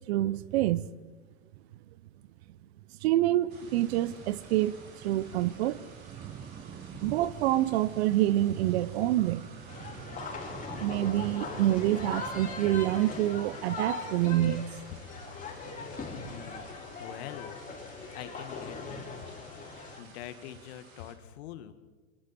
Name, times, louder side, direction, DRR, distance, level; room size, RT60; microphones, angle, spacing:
voice 1, 0.1-0.9 3.0-5.9 7.0-9.5 10.8-14.7, right 14 dB, 50° right, 0.8 m, -27 dB
sound 1, 3.2-13.6, right 8 dB, 20° right, 0.8 m, -47 dB
sound 2, 3.5-21.1, right 3 dB, 80° right, 5.6 m, -55 dB
sound 3, 9.7-20.0, left 4 dB, 20° left, 4.3 m, -40 dB
voice 2, 16.2-16.7 17.0-17.6 18.1-19.0 20.0-21.7, left 12 dB, 50° left, 2.0 m, -44 dB
27.5 x 26.5 x 4.3 m
hypercardioid pair, 105°, 41 cm